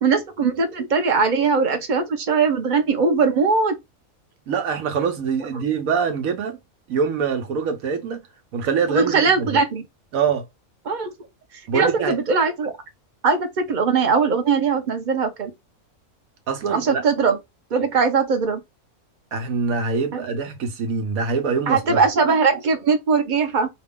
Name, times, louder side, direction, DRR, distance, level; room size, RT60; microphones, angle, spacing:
voice 1, 0.0-3.8 8.9-9.8 10.9-11.1 11.7-12.7 13.2-15.5 16.7-17.4 17.7-18.6 20.1-20.2 21.7-23.7, right 5 dB, 45° right, 0.7 m, -20 dB
voice 2, 4.5-6.6 6.9-8.2 8.5-9.6 10.1-10.4 11.7-12.2 16.5-17.0 19.3-22.0, right 5 dB, 80° right, 1.2 m, -24 dB
4.8 x 2.3 x 3.6 m
omnidirectional pair, 1.5 m